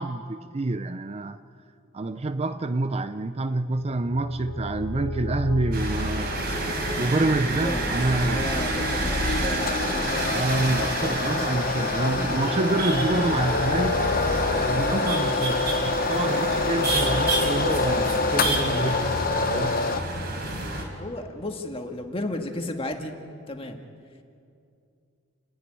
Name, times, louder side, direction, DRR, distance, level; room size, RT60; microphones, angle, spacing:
voice 1, 0.0-1.4 1.9-6.6 7.0-8.5 10.3-14.1 14.7-19.0 19.5-19.8, right 2 dB, 30° right, 0.5 m, -27 dB
sound 1, 3.8-20.5, left 2 dB, 70° left, 0.8 m, -36 dB
sound 2, 5.7-20.8, right 2 dB, 55° right, 4.2 m, -29 dB
voice 2, 7.5-7.9 8.2-10.4 20.9-23.1 23.5-23.8, left 1 dB, 30° left, 1.8 m, -33 dB
sound 3, 9.6-20.0, left 4 dB, 45° left, 0.9 m, -26 dB
28.5 x 10.5 x 9.9 m
head